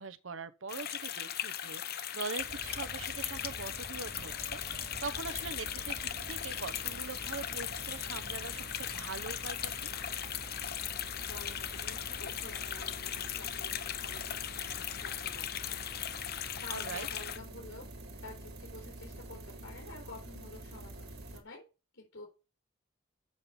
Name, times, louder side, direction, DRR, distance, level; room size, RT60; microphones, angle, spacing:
voice 1, 0.0-9.9 16.7-17.1, right 4 dB, 70° right, 0.8 m, -42 dB
sound 1, 0.7-17.4, left 10 dB, 50° left, 0.7 m, -38 dB
sound 2, 2.4-21.4, right 1 dB, 55° right, 1.9 m, -47 dB
voice 2, 11.3-17.9 18.2-21.7 21.9-22.3, left 2 dB, 85° left, 3.6 m, -50 dB
7.6 x 5.5 x 6.9 m
head